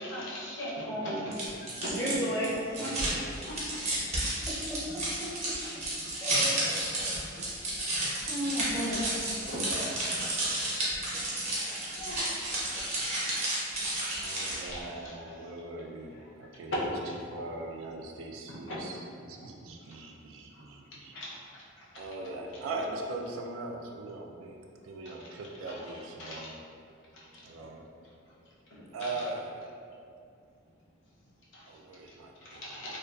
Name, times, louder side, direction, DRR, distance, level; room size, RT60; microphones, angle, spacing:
voice 1, 0.0-1.3 1.6-2.0 2.3-2.5 3.5-3.8 4.2-4.5 6.0-6.1 6.9-8.3 9.5-9.6 10.7-10.8 11.4-11.5 11.9-12.3 13.0-13.1 13.8-14.1 14.6-15.3 18.5-18.8 19.8-20.1 20.5-20.7 21.1-22.0 25.0-25.3 25.7-25.9 26.2-26.5 27.3-27.4 28.7-29.2 31.5-31.6 32.5-33.0, left 1 dB, 65° left, -6 dB, 0.6 m, -43 dB
voice 2, 0.7-1.3 1.9-2.5 2.8-3.1 4.4-5.3 6.2-7.0 8.3-9.0, equal, 10° left, -8 dB, 0.5 m, -34 dB
sound 1, 1.3-14.8, right 1 dB, 35° right, 0.6 m, -32 dB
voice 3, 2.4-3.4 9.3-10.0 14.2-16.9 17.3-21.1 21.9-26.6 27.4-27.9 28.9-29.6 31.6-32.9, right 2 dB, 80° right, 2 dB, 0.3 m, -41 dB
2.5 x 2.3 x 2.3 m, 2.3 s
head